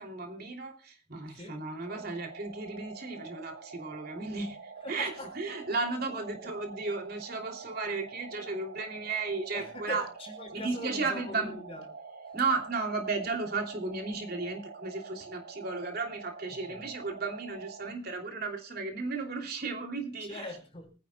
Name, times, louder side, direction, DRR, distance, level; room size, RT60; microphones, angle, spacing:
voice 1, 0.0-10.0 10.5-11.5 12.3-20.4, right 3 dB, 50° right, 3.0 m, -34 dB
voice 2, 1.3-1.6 4.8-5.3 6.1-6.5 9.5-11.8 16.7-16.9 20.2-20.9, left 1 dB, 30° left, 5.2 m, -42 dB
sound 1, 1.8-17.9, right 4 dB, 75° right, 1.6 m, -47 dB
25.0 x 10.5 x 2.3 m
head